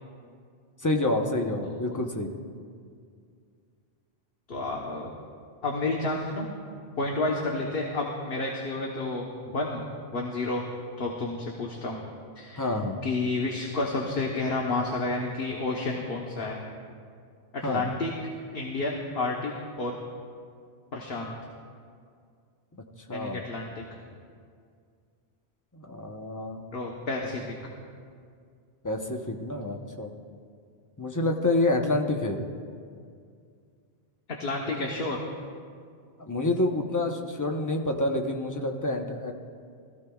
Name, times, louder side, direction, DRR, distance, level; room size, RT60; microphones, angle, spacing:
voice 1, 0.8-2.3 12.6-13.0 17.6-17.9 23.1-23.4 25.7-26.6 28.8-30.1 31.0-32.4 36.2-39.3, left 2 dB, 20° left, 2 dB, 0.8 m, -28 dB
voice 2, 1.6-2.0 4.5-5.2 5.6-6.5 7.0-9.8 10.1-10.6 11.0-12.0 12.3-12.7 13.0-16.6 17.5-18.1 18.5-20.0 20.9-21.3 23.1-23.8 26.7-27.5 34.3-35.2, left 2 dB, 60° left, -1 dB, 1.2 m, -30 dB
20.0 x 14.5 x 2.3 m, 2.2 s
omnidirectional pair, 1.1 m